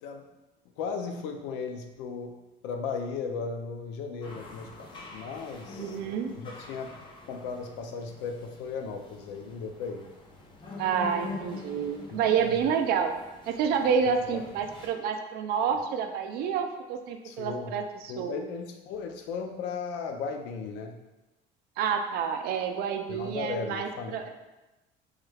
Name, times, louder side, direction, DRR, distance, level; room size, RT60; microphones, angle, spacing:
voice 1, 0.8-2.3 2.6-6.0 6.4-7.0 7.3-10.1 12.1-12.2 12.5-12.7 14.1-14.4 15.7-15.8 17.2-17.8 18.1-21.0 23.1-24.2, left 5 dB, 85° left, 4 dB, 0.4 m, -36 dB
sound 1, 4.2-14.9, left 3 dB, 30° left, 0.5 m, -45 dB
voice 2, 5.8-6.3 10.8-13.1 13.5-18.4 21.8-24.3, right 7 dB, 60° right, 6 dB, 0.4 m, -29 dB
3.1 x 2.3 x 3.3 m, 1.0 s
cardioid pair, 155°, 18 cm